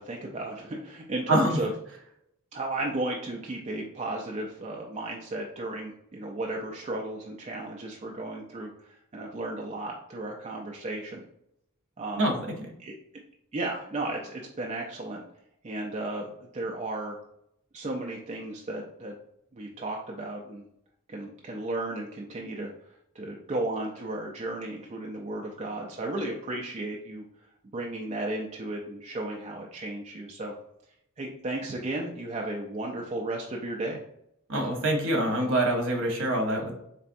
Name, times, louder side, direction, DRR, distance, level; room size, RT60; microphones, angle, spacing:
voice 1, 0.0-1.7 2.5-11.2 12.0-12.3 12.8-12.9 13.5-15.2 15.6-17.2 17.7-19.1 19.5-20.7 21.1-22.7 23.1-27.2 27.7-30.5 31.2-34.0, right 2 dB, 30° right, -1 dB, 0.4 m, -34 dB
voice 2, 34.5-36.7, right 1 dB, 60° right, 2 dB, 1.0 m, -25 dB
4.1 x 3.3 x 2.6 m, 0.76 s
head